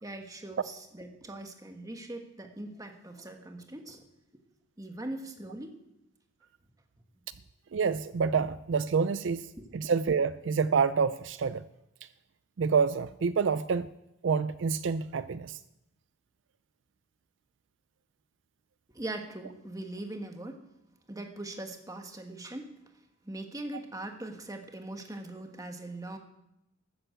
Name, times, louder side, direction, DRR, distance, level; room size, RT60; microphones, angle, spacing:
voice 1, 0.0-4.1 4.8-5.8 9.6-9.7 18.9-20.6 21.1-22.7 23.2-26.2, right 2 dB, 20° right, 4 dB, 1.3 m, -41 dB
voice 2, 7.7-9.5 9.7-11.6 12.6-13.9 14.2-15.6, right 5 dB, 65° right, 14 dB, 0.4 m, -27 dB
13.0 x 8.9 x 7.9 m, 0.89 s
head